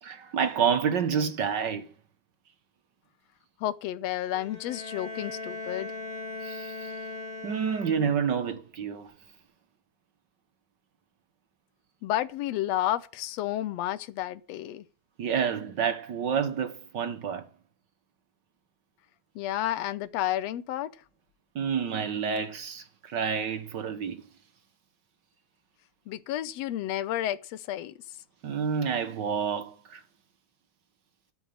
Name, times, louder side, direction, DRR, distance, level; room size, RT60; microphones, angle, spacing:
voice 1, 0.0-1.9 6.4-7.0 7.4-9.1 15.2-17.5 21.5-24.2 28.4-30.0, right 7 dB, 55° right, 1.2 m, -29 dB
voice 2, 3.6-5.9 12.0-14.8 19.4-20.9 26.1-28.0, left 13 dB, 70° left, 1.8 m, -31 dB
Bowed string instrument, 4.3-8.4, left 2 dB, 50° left, 3.2 m, -39 dB
13.0 x 7.0 x 8.6 m
omnidirectional pair, 3.3 m